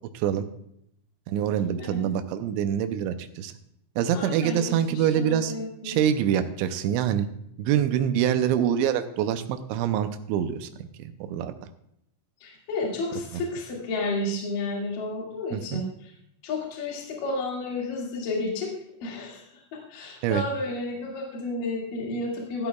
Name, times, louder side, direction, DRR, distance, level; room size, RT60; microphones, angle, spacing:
voice 1, 0.1-0.5 1.3-3.5 4.0-5.5 5.8-7.3 7.6-10.7 11.2-11.5 15.5-15.8 20.2-20.4, right 9 dB, 80° right, 8 dB, 2.7 m, -25 dB
voice 2, 4.1-6.0 12.4-16.1 16.4-18.7 19.0-22.7, left 2 dB, 50° left, -3 dB, 3.3 m, -32 dB
15.5 x 13.5 x 2.4 m, 0.74 s
omnidirectional pair, 5.8 m